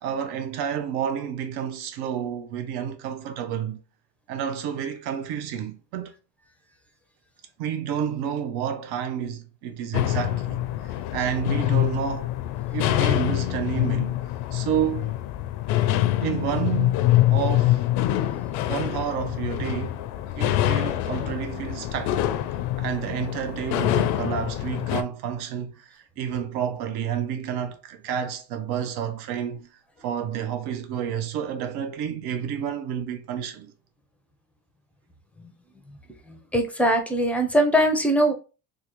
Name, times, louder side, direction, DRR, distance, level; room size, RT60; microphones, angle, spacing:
voice 1, 0.0-3.8 4.3-6.1 7.6-12.3 12.7-14.2 14.5-15.2 16.2-17.9 18.7-22.2 22.5-29.7 30.0-33.7, right 8 dB, 75° right, 0.6 m, -30 dB
sound 1, 9.9-25.0, left 14 dB, 90° left, 0.5 m, -25 dB
voice 2, 36.3-38.3, equal, 5° left, 0.4 m, -21 dB
3.6 x 2.3 x 2.9 m
cardioid pair, 145°, 39 cm